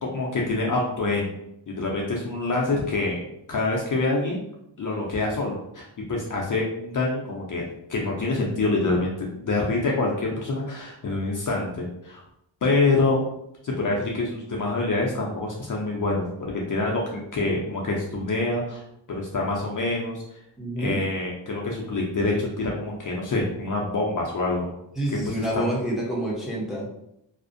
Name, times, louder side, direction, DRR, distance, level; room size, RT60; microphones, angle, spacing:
voice 1, 0.0-1.3 1.7-3.2 3.5-4.4 4.8-7.6 7.9-12.2 12.6-13.2 13.6-18.8 19.2-20.2 20.8-24.7 25.3-25.8, left 2 dB, 45° left, -2 dB, 0.5 m, -26 dB
voice 2, 20.6-21.0 25.0-26.9, right 1 dB, ahead, -4 dB, 0.7 m, -28 dB
2.4 x 2.1 x 2.5 m, 0.79 s
cardioid pair, 85°, 46 cm